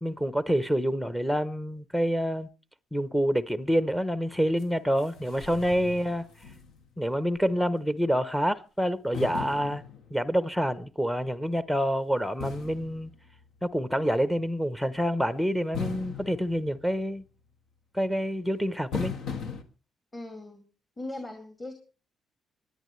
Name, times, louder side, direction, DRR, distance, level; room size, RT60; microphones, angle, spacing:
voice 1, 0.0-2.5 2.9-6.3 7.0-9.8 10.1-13.1 13.6-17.2 17.9-19.1, equal, 5° left, 0.7 m, -27 dB
sound 1, 4.6-4.7 5.0-7.0 7.4-7.5 9.1-10.5 12.4-13.8 15.7-17.3 18.9-19.6, left 6 dB, 80° left, 1.4 m, -39 dB
voice 2, 20.1-20.7 21.0-21.7, left 2 dB, 25° left, 2.4 m, -39 dB
24.5 x 9.9 x 3.2 m
cardioid pair, 90°, 0 cm